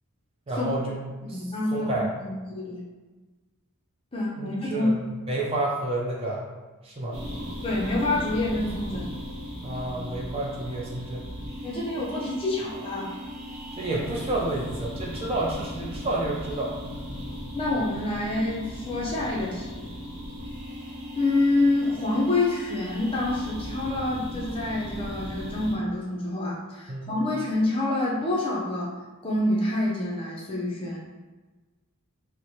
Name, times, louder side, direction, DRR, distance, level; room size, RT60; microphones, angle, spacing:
voice 1, 0.5-0.9 1.3-1.4 1.7-2.1 4.4-6.4 6.8-7.2 9.6-11.3 13.7-16.7 26.9-27.1, right 2 dB, 25° right, -3 dB, 0.4 m, -30 dB
voice 2, 1.2-1.9 2.2-2.8 4.1-4.9 7.6-9.1 11.6-13.1 17.5-19.9 21.1-28.9 29.2-31.1, left 2 dB, 25° left, -4 dB, 0.5 m, -27 dB
sound 1, 7.1-25.8, equal, 60° right, 0.9 m, -37 dB
4.4 x 2.1 x 2.7 m, 1.3 s
head